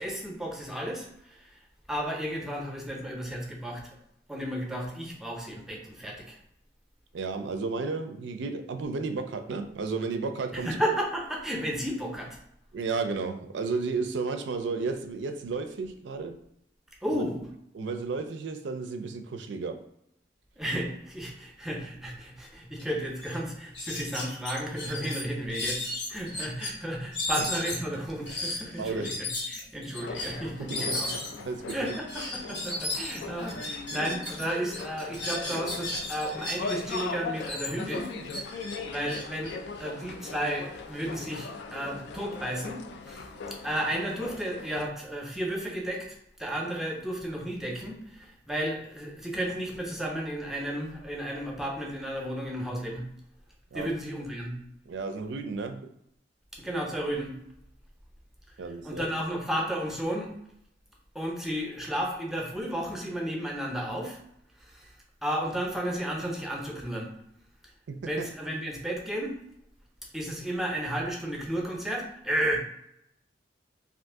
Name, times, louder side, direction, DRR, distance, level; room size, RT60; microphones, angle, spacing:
voice 1, 0.0-1.6 1.9-3.8 4.3-6.4 10.5-12.4 17.0-17.5 20.6-31.1 31.7-38.1 38.9-39.5 39.8-43.3 43.6-53.1 53.7-54.6 56.5-57.3 58.8-60.3 61.1-64.2 64.6-64.9 65.2-67.1 68.0-69.4 70.1-72.6, right 1 dB, ahead, -1 dB, 0.6 m, -33 dB
voice 2, 7.1-10.8 12.7-16.4 17.1-17.3 17.7-19.8 27.4-27.5 28.8-29.2 30.6-31.0 31.5-31.8 53.7-53.9 54.9-55.9 58.6-59.1 67.9-68.2, right 4 dB, 70° right, 7 dB, 0.4 m, -33 dB
sound 1, 22.8-22.9 23.2-23.4 23.7-26.7 27.1-34.4 34.7-37.0 37.4-40.3, left 2 dB, 80° left, 1.5 m, -35 dB
sound 2, 30.0-44.9, left 4 dB, 65° left, 0.3 m, -40 dB
2.6 x 2.5 x 3.5 m, 0.76 s
head